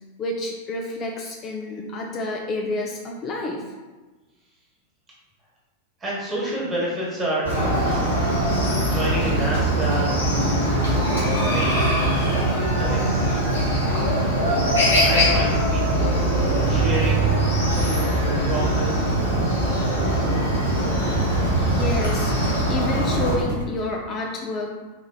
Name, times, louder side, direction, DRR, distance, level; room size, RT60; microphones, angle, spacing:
voice 1, 0.2-3.7 21.7-24.7, left 2 dB, 30° left, 0 dB, 0.4 m, -29 dB
voice 2, 6.0-8.3 8.8-13.7 14.1-16.1 16.5-17.9 18.2-20.4, right 1 dB, 20° right, -5 dB, 1.2 m, -31 dB
Chicken rooster, 7.5-23.3, right 1 dB, 70° left, 1.2 m, -21 dB
sound 1, 16.3-17.7 18.2-23.6, right 5 dB, 55° right, 0.9 m, -30 dB
4.1 x 3.0 x 2.3 m, 1.2 s
figure-of-eight pair, 90°, 0 cm